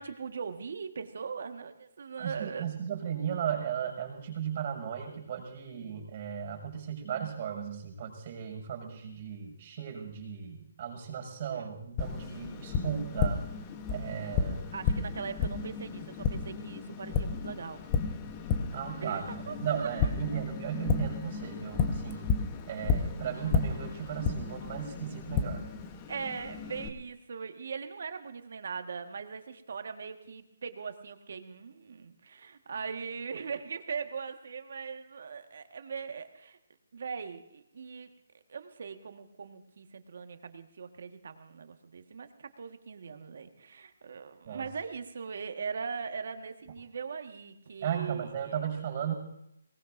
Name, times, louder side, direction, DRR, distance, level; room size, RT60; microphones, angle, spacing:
voice 1, 0.0-2.8 11.5-11.7 14.7-17.8 19.0-19.9 20.3-20.4 26.1-36.6 36.9-38.1 38.5-48.7, right 5 dB, 60° right, 7 dB, 1.5 m, -40 dB
voice 2, 2.2-13.4 13.9-14.7 18.7-22.3 22.7-25.6 44.5-44.6 47.8-49.1, right 8 dB, 35° right, 1 dB, 6.1 m, -36 dB
Tap, 12.0-26.9, left 5 dB, 25° left, 1.0 m, -33 dB
23.0 x 19.0 x 2.6 m, 0.77 s
hypercardioid pair, 160°, 0 cm